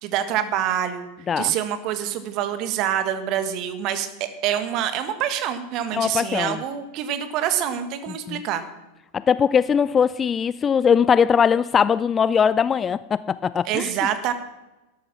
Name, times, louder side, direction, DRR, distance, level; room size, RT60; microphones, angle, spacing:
voice 1, 0.0-1.1 1.4-8.6 13.6-14.3, right 10 dB, 40° right, 1.7 m, -26 dB
voice 2, 5.9-6.6 8.3-8.4 9.1-14.1, left 7 dB, 20° left, 0.4 m, -20 dB
13.0 x 12.0 x 6.1 m
figure-of-eight pair, 90°, 0 cm